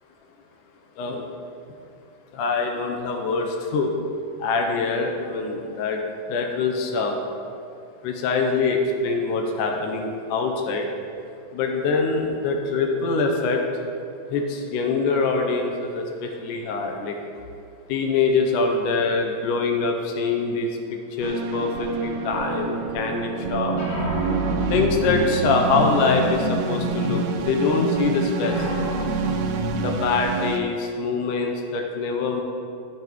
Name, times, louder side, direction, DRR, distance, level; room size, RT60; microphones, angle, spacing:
voice 1, 2.3-3.9 4.4-6.0 6.3-7.2 8.0-10.9 11.5-13.6 14.3-17.1 17.9-20.7 21.2-24.0 24.7-28.6 29.8-32.4, left 4 dB, 80° left, 2 dB, 2.1 m, -24 dB
sound 1, 21.2-30.6, right 6 dB, 80° right, 2.1 m, -29 dB
sound 2, 23.7-29.8, left 1 dB, 50° left, 1.5 m, -28 dB
13.0 x 5.8 x 3.0 m, 2.5 s
omnidirectional pair, 3.9 m